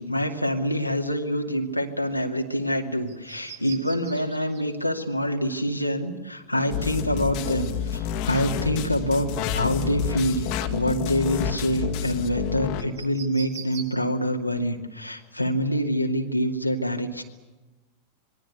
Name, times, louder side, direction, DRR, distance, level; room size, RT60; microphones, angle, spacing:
voice 1, 0.0-9.3 9.6-17.2, equal, 90° left, 2 dB, 2.5 m, -26 dB
sound 1, 2.1-2.4 2.8-4.6 6.4-6.5 8.3-8.9 9.2-9.6 10.2-10.3 10.7-11.7 12.8-13.9, right 8 dB, 55° right, 7.9 m, -43 dB
sound 2, 6.7-12.8, left 9 dB, 45° left, 2.2 m, -29 dB
26.5 x 21.5 x 8.3 m, 1.1 s
figure-of-eight pair, 90°, 0 cm